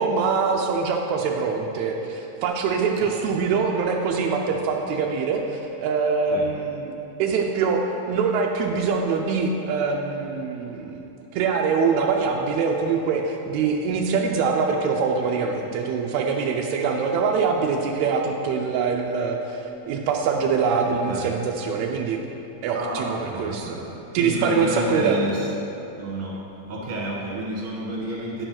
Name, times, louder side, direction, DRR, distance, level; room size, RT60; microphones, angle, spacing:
voice 1, 0.0-6.9 7.2-11.0 11.3-22.2 22.6-23.8 24.1-25.2, right 5 dB, 85° right, 1 dB, 1.6 m, -24 dB
voice 2, 22.7-25.5 26.0-26.4 26.7-28.5, right 1 dB, 50° right, -4 dB, 2.0 m, -30 dB
9.6 x 4.5 x 5.9 m, 3.0 s
omnidirectional pair, 3.8 m